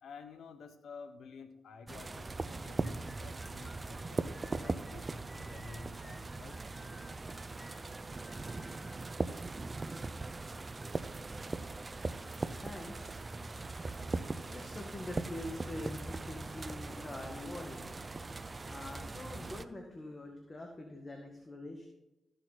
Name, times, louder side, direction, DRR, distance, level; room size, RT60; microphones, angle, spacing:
voice 1, 0.0-7.1 9.9-10.1, left 5 dB, 80° left, 10 dB, 1.0 m, -52 dB
sound 1, 1.9-19.6, right 3 dB, 35° right, 0.6 m, -40 dB
sound 2, 2.6-10.6, left 1 dB, 10° left, 0.7 m, -58 dB
voice 2, 12.0-21.9, left 1 dB, 30° left, 2 dB, 1.7 m, -46 dB
13.5 x 6.9 x 4.1 m, 0.95 s
cardioid pair, 60°, 0 cm